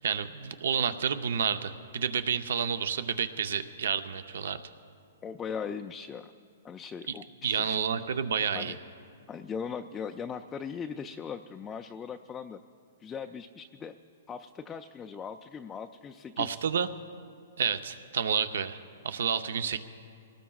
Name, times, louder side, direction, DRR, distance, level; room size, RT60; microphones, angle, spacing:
voice 1, 0.0-4.6 7.4-8.7 16.4-16.9 17.6-18.8 19.0-19.8, right 7 dB, 75° right, 11 dB, 0.6 m, -30 dB
voice 2, 5.2-6.3 6.6-7.8 8.5-8.8 9.3-12.6 13.0-13.9 14.3-16.6, left 6 dB, 15° left, 5 dB, 0.3 m, -39 dB
25.0 x 18.5 x 2.4 m, 2.4 s
hypercardioid pair, 155°, 0 cm